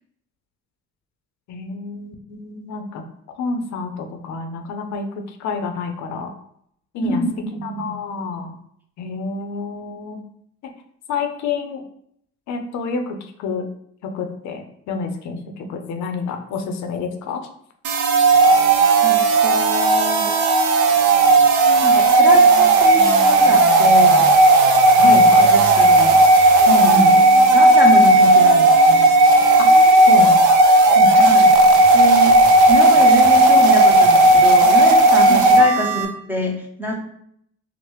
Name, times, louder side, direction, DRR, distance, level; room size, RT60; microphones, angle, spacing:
voice 1, 1.5-3.0 3.3-6.3 6.9-7.2 7.6-8.6 9.0-10.2 10.6-10.7 11.1-11.8 12.5-13.7 14.0-17.4 25.0-25.5 26.7-27.2 29.6-29.7 30.1-30.7 31.0-31.1 35.3-35.4, left 4 dB, 65° left, 5 dB, 0.5 m, -28 dB
sound 1, 17.8-36.1, right 2 dB, 75° right, 0.6 m, -13 dB
voice 2, 19.0-20.3 21.8-24.3 25.4-26.2 26.9-29.1 31.2-31.5 31.9-32.4 32.7-37.0, equal, 5° right, 0 dB, 0.6 m, -25 dB
3.0 x 2.1 x 3.0 m, 0.70 s
cardioid pair, 100°, 30 cm